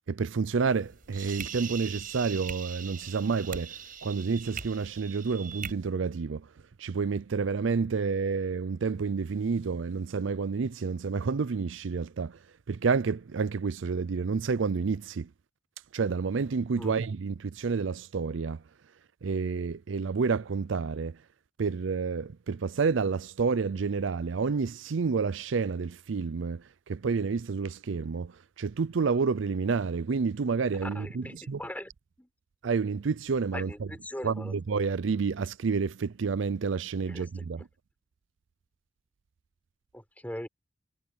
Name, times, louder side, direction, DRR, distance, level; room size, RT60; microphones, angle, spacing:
voice 1, 0.1-3.7 4.0-6.4 6.8-12.4 12.7-15.3 15.9-18.6 19.2-21.2 21.6-28.3 28.6-31.6 32.6-33.9 34.2-37.6, right 5 dB, 75° right, 0.5 m, -29 dB
sound 1, 0.7-5.7, right 7 dB, 45° right, 6.1 m, -41 dB
voice 2, 30.8-31.9 32.2-32.3 33.5-34.6 37.1-37.6 39.9-40.5, left 1 dB, 10° left, 4.2 m, -40 dB
head